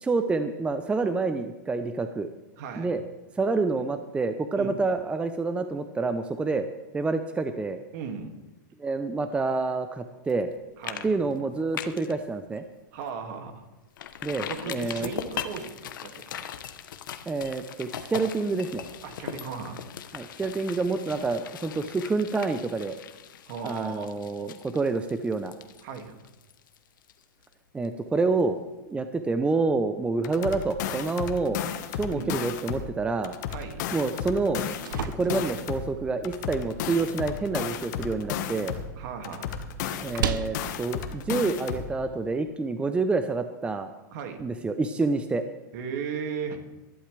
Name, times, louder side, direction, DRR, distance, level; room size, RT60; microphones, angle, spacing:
voice 1, 0.0-2.3 2.8-3.0 3.4-6.7 6.9-7.8 8.8-10.5 11.0-12.6 14.2-15.1 17.3-18.8 20.1-23.0 23.6-25.5 27.7-28.6 28.9-31.6 31.9-33.4 33.9-34.6 35.1-38.8 40.0-43.9 44.4-45.4, right 3 dB, 10° right, 8 dB, 0.7 m, -28 dB
voice 2, 2.6-3.0 4.6-4.7 7.9-8.3 10.8-11.1 12.9-13.6 14.5-16.4 19.0-19.8 23.5-24.1 25.8-26.1 32.1-32.3 33.5-33.8 35.2-35.3 39.0-39.5 44.1-44.4 45.7-46.6, right 6 dB, 60° right, 4 dB, 2.3 m, -36 dB
sound 1, 10.3-10.5 10.8-11.1 11.4-12.1 12.6-12.7 13.1-13.2 14.0-27.5 27.8-27.9, left 9 dB, 80° left, 1.1 m, -39 dB
sound 2, 30.2-32.9 33.2-35.9 36.2-38.9 39.2-41.9, left 9 dB, 65° left, 1.5 m, -33 dB
sound 3, 34.4-42.4, right 7 dB, 85° right, 0.9 m, -38 dB
20.5 x 11.5 x 3.4 m, 1.1 s
hypercardioid pair, 130°, 11 cm